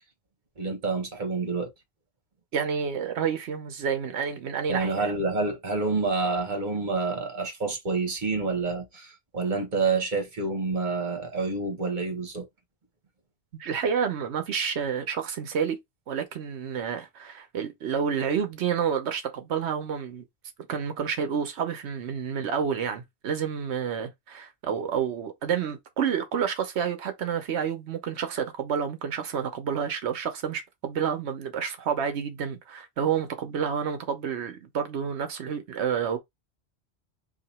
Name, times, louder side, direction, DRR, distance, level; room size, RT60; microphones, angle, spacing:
voice 1, 0.6-1.7 4.7-12.5, right 3 dB, 45° right, 1.3 m, -28 dB
voice 2, 2.5-5.1 13.6-15.8 16.1-20.2 20.7-36.2, right 7 dB, 90° right, 1.1 m, -29 dB
2.9 x 2.7 x 4.1 m
omnidirectional pair, 1.1 m